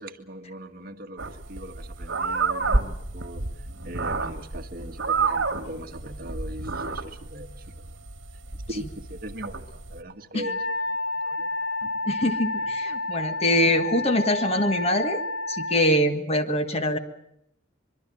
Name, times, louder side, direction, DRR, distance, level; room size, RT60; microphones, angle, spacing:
voice 1, 0.0-8.0 8.7-11.5 11.8-11.9 12.6-12.7, right 1 dB, 50° right, 5 dB, 1.8 m, -40 dB
sound 1, 1.2-10.0, right 4 dB, 75° right, 1.7 m, -30 dB
Wind instrument woodwind instrument, 10.4-15.9, left 2 dB, 65° left, 2.9 m, -30 dB
voice 2, 12.1-15.2 15.5-17.0, left 1 dB, 35° left, 8 dB, 1.6 m, -23 dB
24.0 x 23.0 x 7.7 m, 0.77 s
head